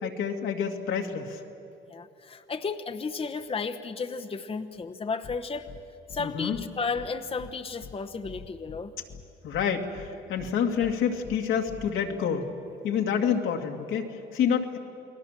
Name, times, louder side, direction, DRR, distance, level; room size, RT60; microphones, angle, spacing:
voice 1, 0.0-1.4 6.2-6.6 9.4-12.5 12.8-14.8, left 7 dB, 85° left, 2 dB, 2.3 m, -28 dB
voice 2, 1.9-5.7 6.1-8.9, left 4 dB, 30° left, 6 dB, 1.0 m, -33 dB
sound 1, 5.2-5.4 5.7-5.8 6.1-6.2 6.5-6.7 7.0-7.1 7.4-7.5 7.8-7.9 8.2-8.8 9.1-9.2 9.5-9.7 10.0-10.1 10.4-10.5 10.8-10.9 11.2-11.4 11.7-11.9, left 6 dB, 45° left, 1.2 m, -44 dB
29.0 x 20.0 x 7.5 m, 2.8 s
cardioid pair, 90°, 20 cm